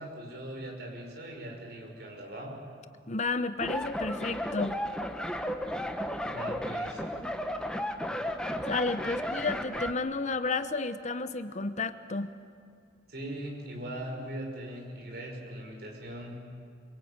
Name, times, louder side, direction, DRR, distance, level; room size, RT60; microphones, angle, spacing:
voice 1, 0.0-2.6 6.3-7.0 13.1-16.4, right 1 dB, 60° right, 1 dB, 6.1 m, -40 dB
voice 2, 3.1-4.8 8.7-12.3, left 3 dB, 40° left, 11 dB, 0.9 m, -32 dB
sound 1, 3.6-9.9, equal, 5° left, 1.3 m, -34 dB
25.5 x 24.5 x 8.8 m, 2.3 s
head